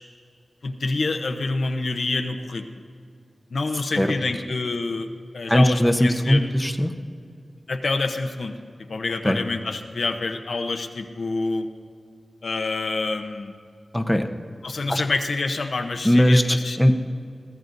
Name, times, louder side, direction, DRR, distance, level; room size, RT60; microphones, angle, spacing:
voice 1, 0.6-2.6 3.5-5.1 5.3-6.5 7.7-8.6 8.9-11.7 12.4-13.5 14.6-16.8, left 3 dB, 75° left, 5 dB, 0.8 m, -27 dB
voice 2, 5.5-6.9 9.2-9.4 13.9-14.2 14.9-15.0 16.0-16.9, equal, 5° left, 5 dB, 0.8 m, -19 dB
21.5 x 15.0 x 2.7 m, 2.3 s
wide cardioid pair, 65°, 0 cm